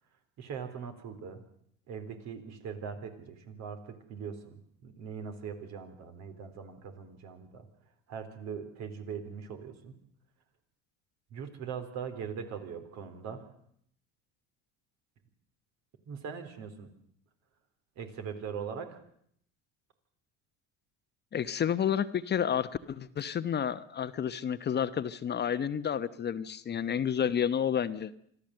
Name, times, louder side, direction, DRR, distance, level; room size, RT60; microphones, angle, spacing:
voice 1, 0.4-1.4 1.9-7.7 8.1-9.9 11.3-13.5 16.1-16.9 18.0-19.0, right 6 dB, 60° right, 7 dB, 3.9 m, -41 dB
voice 2, 21.3-28.1, left 8 dB, 35° left, 13 dB, 1.0 m, -30 dB
25.5 x 14.5 x 7.8 m, 0.69 s
supercardioid pair, 95°, 30 cm